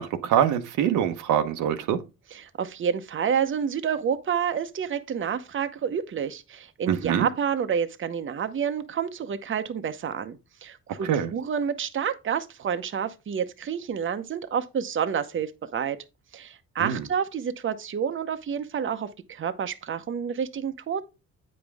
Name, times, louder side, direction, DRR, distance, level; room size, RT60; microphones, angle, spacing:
voice 1, 0.0-2.0 6.9-7.3 11.1-11.3 16.8-17.0, right 9 dB, 85° right, 1.0 m, -24 dB
voice 2, 2.3-16.0 16.3-21.0, right 7 dB, 40° right, 0.8 m, -29 dB
8.7 x 5.3 x 3.5 m
cardioid pair, 90°, 30 cm